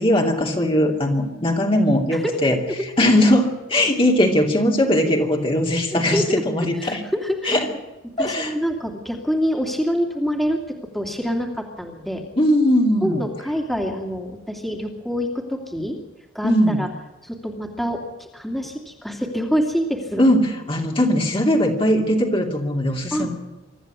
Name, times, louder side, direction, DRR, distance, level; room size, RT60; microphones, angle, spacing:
voice 1, 0.0-7.0 7.4-7.7 8.2-8.5 12.4-13.2 16.4-16.8 20.2-23.3, left 1 dB, 30° left, 0 dB, 2.7 m, -19 dB
voice 2, 2.1-2.7 5.0-5.1 5.9-6.4 6.8-7.6 8.2-12.2 13.0-16.0 16.3-16.9 17.2-20.2 23.1-23.3, equal, ahead, 1 dB, 2.7 m, -26 dB
25.0 x 13.5 x 9.5 m, 1.1 s
head